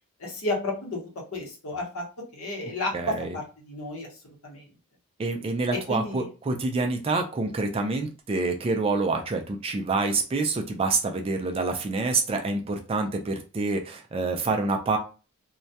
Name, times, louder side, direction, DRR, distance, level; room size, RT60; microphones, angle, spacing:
voice 1, 0.2-1.0 1.3-2.0 2.3-4.1 4.4-4.6 5.9-6.3, left 2 dB, 70° left, 0 dB, 0.9 m, -32 dB
voice 2, 2.9-3.4 5.2-15.0, right 3 dB, 25° right, 4 dB, 0.3 m, -27 dB
2.2 x 2.1 x 2.6 m, 0.34 s
head